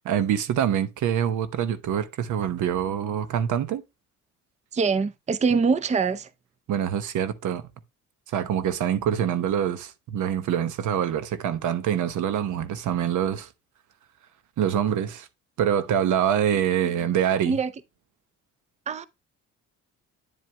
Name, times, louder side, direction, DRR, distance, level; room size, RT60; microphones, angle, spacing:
voice 1, 0.0-3.8 6.7-7.7 8.3-13.5 14.6-15.3 15.6-17.6, right 9 dB, 75° right, 0.9 m, -25 dB
voice 2, 4.7-6.3 16.8-16.9 17.4-17.7 18.9-19.1, right 5 dB, 25° right, 0.5 m, -24 dB
9.5 x 7.6 x 2.2 m
cardioid pair, 90°, 30 cm